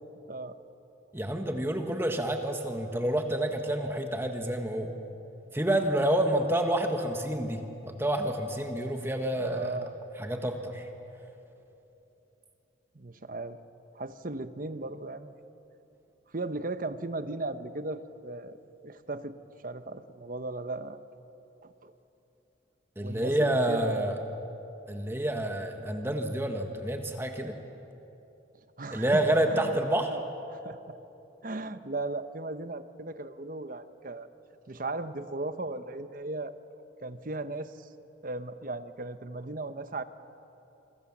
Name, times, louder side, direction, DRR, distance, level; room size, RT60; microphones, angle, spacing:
voice 1, 1.1-4.9 5.5-9.8 10.2-10.9 23.0-24.1 24.9-27.6 28.9-30.1, right 1 dB, 15° right, 4 dB, 1.4 m, -28 dB
voice 2, 9.4-9.9 12.9-13.6 13.9-15.3 16.3-18.6 18.8-19.4 19.6-21.0 21.6-21.9 23.0-24.2 28.8-29.2 29.5-29.8 30.1-30.2 30.5-31.0 31.4-34.3 34.7-36.5 37.0-37.9 38.2-40.0, right 2 dB, 45° right, 11 dB, 1.0 m, -36 dB
27.0 x 25.5 x 7.3 m, 3.0 s
head